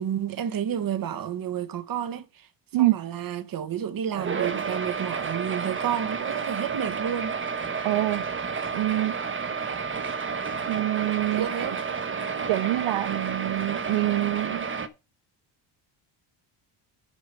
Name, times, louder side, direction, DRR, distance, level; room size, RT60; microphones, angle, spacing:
voice 1, 0.0-2.5 2.8-7.4 11.3-11.8, right 9 dB, 45° right, 1.4 m, -30 dB
sound 1, 4.1-14.9, right 5 dB, 25° right, 1.3 m, -31 dB
voice 2, 7.8-8.3 8.7-9.2 10.7-11.5 12.5-14.7, right 16 dB, 70° right, 0.8 m, -25 dB
8.5 x 5.3 x 6.8 m
cardioid pair, 115°, 48 cm